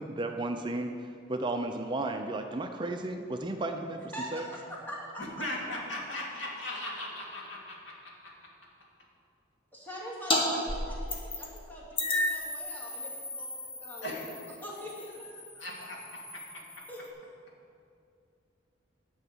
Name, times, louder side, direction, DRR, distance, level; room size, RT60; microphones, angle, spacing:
voice 1, 0.0-4.0 4.3-4.5, right 2 dB, 25° right, 5 dB, 0.5 m, -34 dB
voice 2, 4.1-5.2 5.9-6.0 9.7-14.1 14.6-15.7 16.9-17.0, equal, 10° left, -6 dB, 2.5 m, -43 dB
voice 3, 5.2-8.5 14.0-14.3 15.1-15.2 15.6-16.6, left 1 dB, 80° left, -2 dB, 2.5 m, -39 dB
sound 1, 10.3-10.4 10.7-11.6 12.0-17.1, left 2 dB, 30° left, 1.4 m, -34 dB
10.5 x 5.9 x 8.6 m, 2.4 s
head